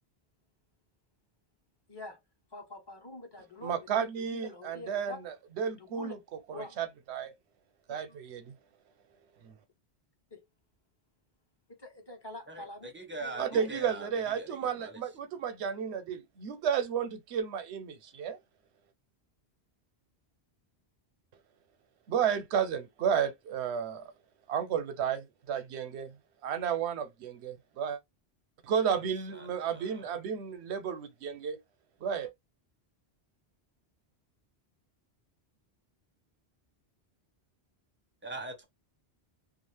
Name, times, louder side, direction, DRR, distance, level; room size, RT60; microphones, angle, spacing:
voice 1, 1.9-2.2 2.5-5.3 5.8-6.1 6.5-6.8 7.9-8.2 10.3-10.4 11.8-12.9 13.2-13.7, left 1 dB, 25° left, 0.7 m, -45 dB
voice 2, 3.6-6.2 6.6-7.3 7.9-8.5 9.4-9.5 13.4-18.4 22.1-24.0 24.5-26.1 26.4-28.0 28.6-31.6 32.0-32.3, right 7 dB, 90° right, 0.9 m, -32 dB
voice 3, 12.5-14.1 14.4-15.0 29.3-30.1 38.2-38.6, right 2 dB, 15° right, 0.5 m, -42 dB
2.4 x 2.4 x 3.1 m
omnidirectional pair, 1.1 m